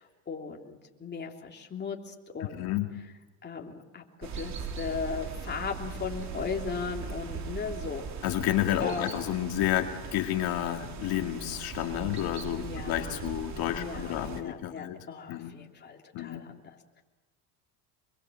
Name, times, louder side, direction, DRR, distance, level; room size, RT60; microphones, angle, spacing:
voice 1, 0.0-2.8 3.4-8.1 8.8-9.3 12.6-13.3 13.7-16.6, left 5 dB, 25° left, 1 dB, 3.4 m, -37 dB
voice 2, 2.5-3.0 8.2-15.0 15.3-15.5 16.1-16.4, left 13 dB, 65° left, 4 dB, 2.3 m, -30 dB
sound 1, 4.2-14.4, right 5 dB, 45° right, 2.9 m, -39 dB
26.5 x 22.5 x 7.6 m, 1.2 s
cardioid pair, 115°, 40 cm